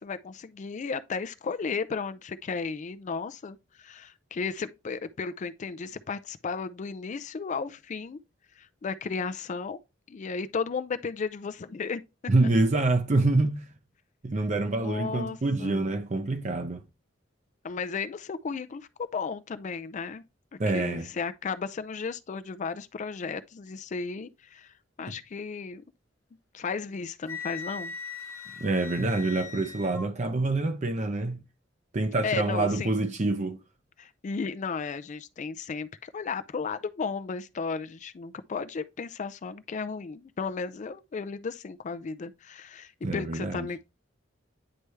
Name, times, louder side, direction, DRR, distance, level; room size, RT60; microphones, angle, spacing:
voice 1, 0.0-8.2 8.6-9.8 10.1-12.0 14.7-15.9 17.6-20.2 20.7-25.8 26.5-27.9 32.2-32.9 34.0-43.9, left 5 dB, 40° left, 0.4 m, -34 dB
voice 2, 12.3-13.7 14.2-16.8 20.6-21.1 25.1-25.2 28.6-31.4 31.9-33.6 43.0-43.7, right 2 dB, 40° right, 0.6 m, -26 dB
Wind instrument woodwind instrument, 27.3-30.1, left 5 dB, 15° left, 0.9 m, -40 dB
9.5 x 3.3 x 3.1 m
head